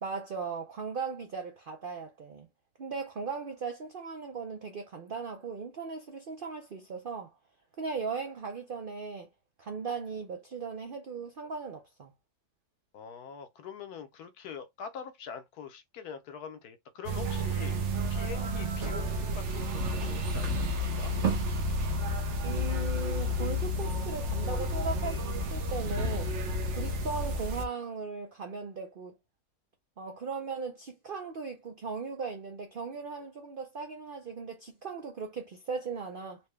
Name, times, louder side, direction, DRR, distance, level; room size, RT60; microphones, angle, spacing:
voice 1, 0.0-2.5 2.8-7.3 7.8-9.3 9.6-12.1 22.4-25.2 25.5-26.3 26.8-29.1 30.0-36.4, right 5 dB, 80° right, 0.4 m, -38 dB
voice 2, 12.9-17.8 18.1-21.1, left 7 dB, 70° left, 1.1 m, -44 dB
sound 1, 17.0-27.6, equal, 60° right, 0.8 m, -31 dB
4.3 x 2.2 x 3.2 m
omnidirectional pair, 1.7 m